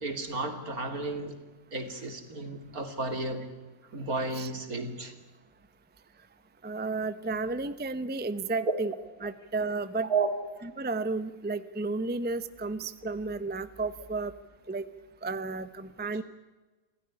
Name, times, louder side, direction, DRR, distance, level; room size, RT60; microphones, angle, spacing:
voice 1, 0.0-1.4 1.7-3.5 3.9-5.1 8.7-8.8 10.0-10.3, right 3 dB, 70° right, 7 dB, 3.5 m, -32 dB
voice 2, 6.6-8.9 9.2-10.1 10.8-14.3 14.7-14.9 15.2-16.2, right 3 dB, 10° right, 13 dB, 0.7 m, -32 dB
26.0 x 17.0 x 9.8 m, 1.3 s
omnidirectional pair, 1.6 m